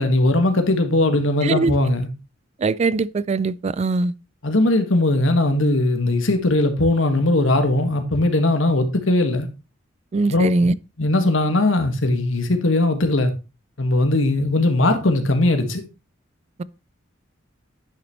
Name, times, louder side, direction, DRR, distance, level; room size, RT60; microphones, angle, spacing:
voice 1, 0.0-2.1 4.4-9.5 10.3-10.5 11.0-13.3 13.8-15.8, left 2 dB, 80° left, 1.6 m, -19 dB
voice 2, 2.6-4.1 10.1-10.7, right 3 dB, 35° right, 0.3 m, -21 dB
10.5 x 5.9 x 3.0 m
head